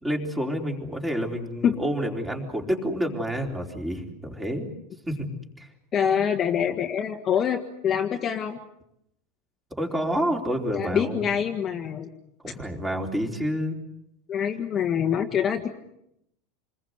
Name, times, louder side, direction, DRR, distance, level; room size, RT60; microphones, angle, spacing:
voice 1, 0.0-4.6 5.1-5.2 5.6-5.7 9.8-11.2 12.4-13.8, equal, 10° right, 2 dB, 3.9 m, -28 dB
voice 2, 5.9-8.6 10.7-12.1 14.3-15.8, left 8 dB, 25° left, 3 dB, 1.8 m, -25 dB
28.0 x 21.5 x 8.1 m, 0.79 s
supercardioid pair, 155°, 0 cm